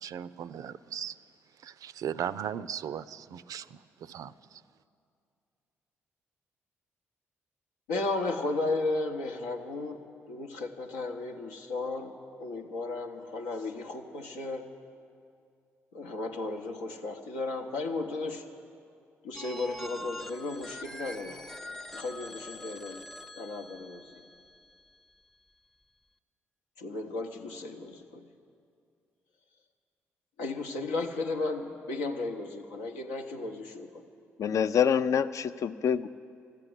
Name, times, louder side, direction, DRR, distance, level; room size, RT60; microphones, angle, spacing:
voice 1, 0.0-1.1 1.6-4.6, right 9 dB, 60° right, 15 dB, 0.4 m, -37 dB
voice 2, 7.9-10.0 10.3-14.7 15.9-18.4 19.2-21.4 21.9-23.0 23.4-24.1 26.8-28.2 30.4-34.0, left 3 dB, 85° left, 2 dB, 0.9 m, -34 dB
Telephone, 19.3-25.1, left 1 dB, 5° left, 0.5 m, -44 dB
voice 3, 34.4-36.1, left 8 dB, 55° left, 13 dB, 0.4 m, -26 dB
13.5 x 8.4 x 9.9 m, 2.4 s
hypercardioid pair, 45°, 7 cm